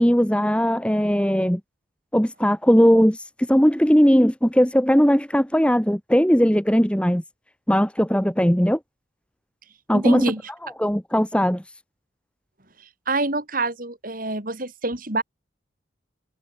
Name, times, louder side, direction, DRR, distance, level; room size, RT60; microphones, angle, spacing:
voice 1, 0.0-1.6 2.1-7.2 7.7-8.8 9.9-10.3 10.8-11.7, equal, 5° left, 1.7 m, -19 dB
voice 2, 9.9-10.4 13.1-15.2, right 2 dB, 45° right, 3.5 m, -26 dB
head